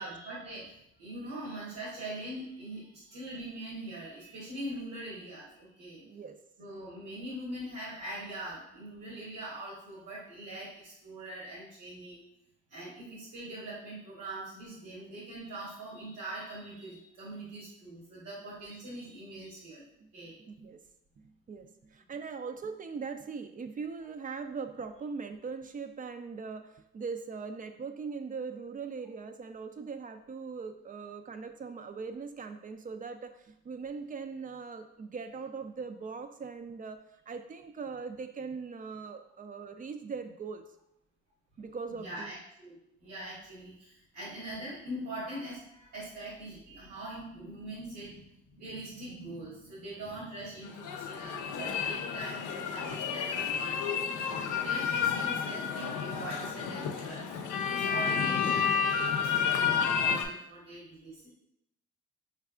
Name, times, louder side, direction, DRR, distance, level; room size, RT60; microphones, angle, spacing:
voice 1, 0.0-6.0 6.6-12.2 12.7-19.8 20.1-20.4 42.0-54.0 54.5-61.3, right 1 dB, 80° right, -8 dB, 1.5 m, -42 dB
voice 2, 6.0-6.4 20.0-20.1 20.4-20.8 21.2-37.0 37.3-40.6 41.6-42.3 54.4-54.5, right 5 dB, 30° right, 8 dB, 0.4 m, -40 dB
sound 1, 50.6-60.2, left 7 dB, 80° left, 0.6 m, -30 dB
4.6 x 3.3 x 2.4 m, 0.82 s
cardioid pair, 90°, 30 cm